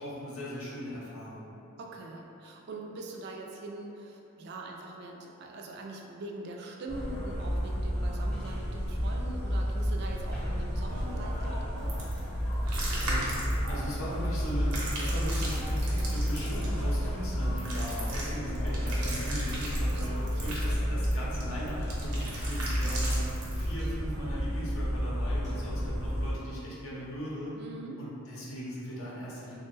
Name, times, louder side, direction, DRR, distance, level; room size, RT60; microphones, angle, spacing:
voice 1, 0.0-1.5 12.6-13.4 13.7-23.2 23.5-27.5 28.0-29.6, equal, 65° left, -7 dB, 0.7 m, -39 dB
voice 2, 1.8-12.0 19.9-20.6 27.6-28.0, right 2 dB, 50° right, 0 dB, 0.3 m, -43 dB
sound 1, 6.9-26.3, equal, 35° left, 0.8 m, -31 dB
Thump thud, 10.0-14.1, equal, 5° left, 0.6 m, -49 dB
sound 2, 11.8-23.7, right 1 dB, 85° right, 0.7 m, -39 dB
3.2 x 2.2 x 3.1 m, 2.8 s
head